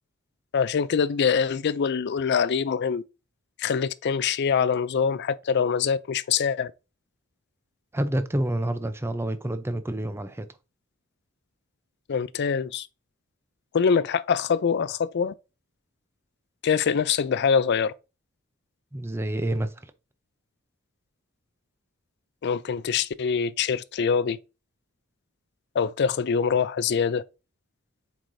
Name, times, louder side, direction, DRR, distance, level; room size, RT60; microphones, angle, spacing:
voice 1, 0.5-3.0 3.6-6.7 12.1-12.9 13.7-15.3 16.6-17.9 22.4-24.4 25.7-27.2, left 6 dB, 50° left, 0.4 m, -24 dB
voice 2, 7.9-10.5 18.9-19.7, right 1 dB, 10° right, 0.5 m, -28 dB
7.5 x 4.8 x 2.7 m
head